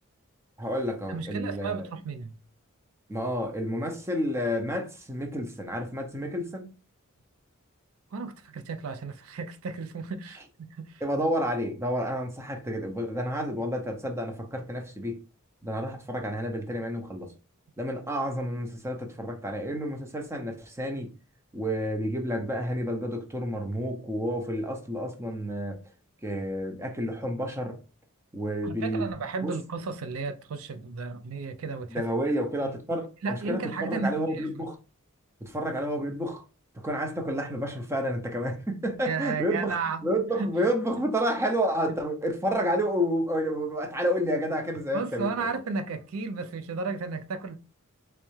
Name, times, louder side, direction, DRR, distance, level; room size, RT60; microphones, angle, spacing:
voice 1, 0.6-1.9 3.1-6.7 11.0-15.2 15.6-17.3 17.8-21.1 21.5-25.8 26.2-27.8 28.3-29.1 29.4-29.6 31.9-34.8 35.4-36.4 36.8-39.8 40.0-45.5, equal, 15° right, 0.6 m, -30 dB
voice 2, 1.1-2.3 8.1-10.9 28.6-32.7 33.2-34.5 39.1-40.1 40.4-40.5 44.9-47.6, right 4 dB, 75° right, 0.5 m, -34 dB
3.4 x 3.2 x 3.1 m
head